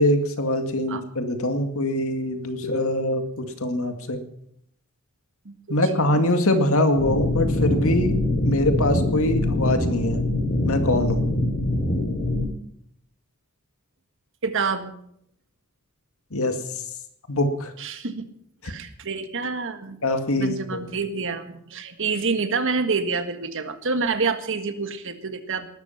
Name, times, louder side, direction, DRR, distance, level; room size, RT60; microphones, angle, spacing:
voice 1, 0.0-4.2 5.7-8.1 8.4-10.2 10.6-11.2 16.3-16.6 17.3-17.7 18.6-18.7 20.0-20.8, left 1 dB, 65° left, 7 dB, 2.2 m, -23 dB
voice 2, 5.4-6.1 14.4-14.9 17.8-18.3 18.6-20.0 20.4-25.7, right 4 dB, 60° right, 9 dB, 1.7 m, -27 dB
sound 1, 7.0-12.4, left 1 dB, 45° left, 4.0 m, -24 dB
19.5 x 12.5 x 5.8 m, 0.70 s
head